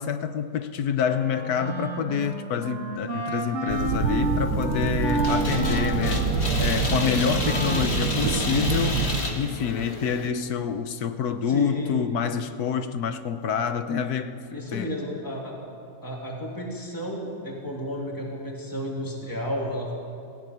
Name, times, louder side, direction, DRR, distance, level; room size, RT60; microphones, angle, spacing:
voice 1, 0.0-6.2 6.6-9.0 9.4-14.9, left 7 dB, 80° left, 10 dB, 1.4 m, -27 dB
Wind instrument woodwind instrument, 1.1-8.4, right 1 dB, 50° right, 2.4 m, -31 dB
sound 1, 3.7-9.2, right 5 dB, 85° right, 1.7 m, -26 dB
sound 2, 5.2-10.3, left 2 dB, 45° left, 2.0 m, -31 dB
voice 2, 11.5-12.0 14.5-15.6 16.0-19.9, equal, 15° left, -2 dB, 2.8 m, -32 dB
17.5 x 16.0 x 9.4 m, 2.4 s
omnidirectional pair, 1.6 m